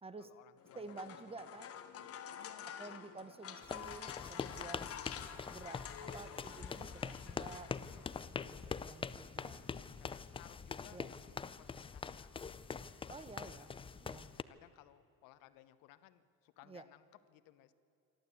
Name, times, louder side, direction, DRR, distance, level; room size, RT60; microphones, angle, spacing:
voice 1, 0.2-1.0 1.5-1.6 2.3-3.4 8.4-12.5 13.6-13.7 14.3-17.7, left 14 dB, 85° left, 13 dB, 1.1 m, -62 dB
sound 1, 0.6-8.2, left 8 dB, 45° left, 1.5 m, -49 dB
voice 2, 0.7-1.7 2.8-4.9 5.5-9.6 10.9-11.1 13.1-13.7 14.0-14.3 16.7-16.9, right 3 dB, 15° right, 13 dB, 0.9 m, -51 dB
sound 2, 3.6-14.4, left 5 dB, 15° left, 0.5 m, -44 dB
27.0 x 12.0 x 8.3 m, 2.8 s
cardioid pair, 135°, 33 cm